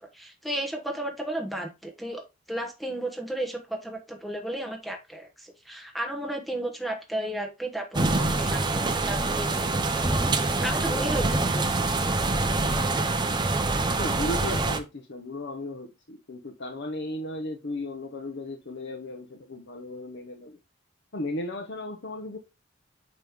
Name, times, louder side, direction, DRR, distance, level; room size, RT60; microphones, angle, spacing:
voice 1, 0.0-11.9, right 1 dB, ahead, 1.0 m, -34 dB
sound 1, 7.9-14.8, right 2 dB, 20° right, 0.6 m, -25 dB
voice 2, 14.0-20.6 21.1-22.4, left 1 dB, 55° left, 0.8 m, -35 dB
9.2 x 3.1 x 3.6 m
head